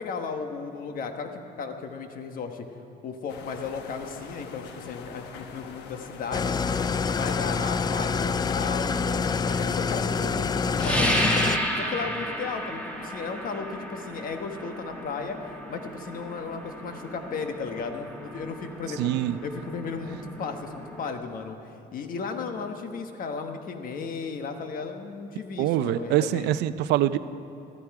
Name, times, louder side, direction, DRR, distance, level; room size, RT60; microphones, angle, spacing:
voice 1, 0.0-2.7 3.0-6.6 7.1-11.2 11.8-19.1 19.4-21.6 21.9-26.5, left 5 dB, 55° left, 6 dB, 1.3 m, -35 dB
sound 1, 3.3-8.8, left 5 dB, 85° left, 1.1 m, -44 dB
Engine starting / Idling, 6.3-11.6, left 5 dB, 25° left, 0.4 m, -26 dB
sound 2, 10.8-21.1, equal, 10° left, 2.0 m, -32 dB
voice 2, 19.0-19.4 25.6-27.2, right 13 dB, 80° right, 14 dB, 0.5 m, -24 dB
15.0 x 14.0 x 4.8 m, 2.8 s
cardioid pair, 110°, 17 cm